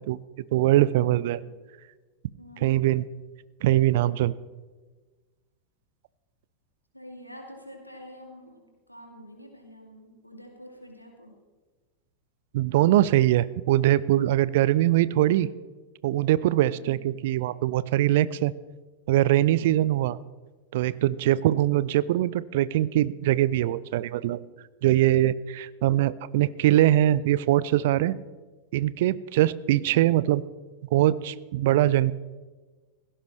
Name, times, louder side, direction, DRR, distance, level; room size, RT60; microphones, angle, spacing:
voice 1, 0.5-1.4 2.6-3.1 3.6-4.3 12.5-15.5 16.0-18.5 19.1-20.2 20.7-24.4 24.8-28.2 28.7-30.4 30.9-32.1, right 14 dB, 55° right, 19 dB, 0.4 m, -22 dB
voice 2, 1.1-1.4 2.4-2.9 6.9-11.4 16.7-17.1 19.5-19.9 21.4-21.8, equal, 90° left, 2 dB, 2.4 m, -47 dB
16.5 x 15.5 x 3.2 m, 1.3 s
figure-of-eight pair, 90°, 0 cm